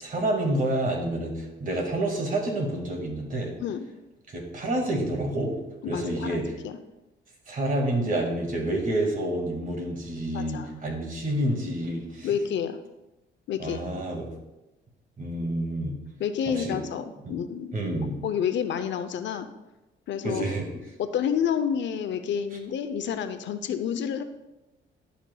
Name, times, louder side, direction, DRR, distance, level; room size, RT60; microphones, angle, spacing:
voice 1, 0.0-3.5 4.3-5.6 5.9-6.4 7.5-12.3 13.6-14.3 15.2-16.0 16.5-16.8 17.2-17.3 17.7-18.2 20.2-20.7, right 1 dB, 45° right, 1 dB, 1.9 m, -28 dB
voice 2, 5.8-6.8 10.3-10.7 12.2-12.8 13.5-13.8 16.2-17.7 18.2-19.5 20.1-20.6 21.0-24.2, left 8 dB, 65° left, 9 dB, 0.6 m, -29 dB
11.5 x 5.8 x 2.2 m, 1.0 s
cardioid pair, 90°, 20 cm